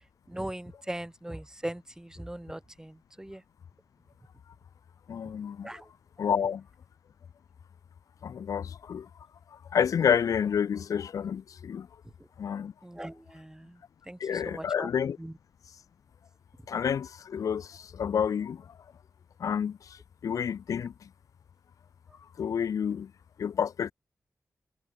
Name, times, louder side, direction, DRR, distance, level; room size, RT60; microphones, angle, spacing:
voice 1, 0.3-3.4 5.6-5.8 12.8-13.8 14.1-14.9 15.2-15.3, right 1 dB, 10° right, 0.6 m, -39 dB
voice 2, 5.1-5.7 6.2-6.6 8.2-9.1 9.7-11.9 12.4-12.7 14.2-15.2 16.7-18.6 19.4-19.8 20.2-20.9 22.4-23.1 23.4-23.9, left 7 dB, 80° left, 0.4 m, -29 dB
cardioid pair, 60°, 6 cm